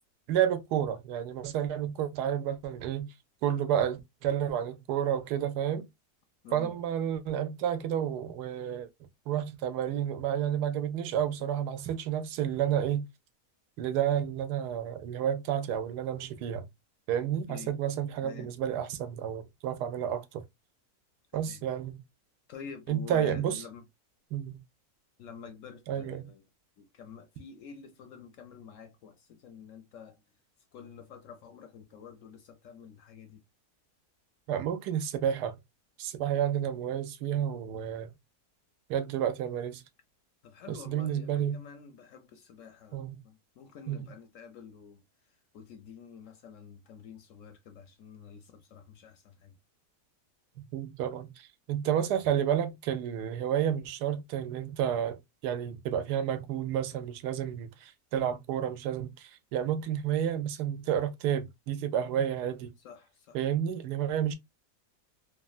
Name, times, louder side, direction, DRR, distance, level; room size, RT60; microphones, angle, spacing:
voice 1, 0.3-3.1 3.4-5.8 6.5-8.9 9.3-13.0 13.8-16.6 17.1-20.4 21.3-22.0 22.9-23.6 24.3-24.6 25.9-26.3 34.5-35.6 36.0-38.1 38.9-39.8 40.7-41.6 42.9-43.2 43.9-44.1 50.6-62.7 63.3-64.3, right 9 dB, 85° right, 1.2 m, -30 dB
voice 2, 18.1-18.5 21.3-21.7 22.5-23.8 25.2-26.4 26.8-30.2 30.7-33.4 40.4-45.0 45.5-49.5 62.8-63.4, left 6 dB, 70° left, 0.8 m, -48 dB
3.2 x 2.3 x 2.3 m
omnidirectional pair, 1.7 m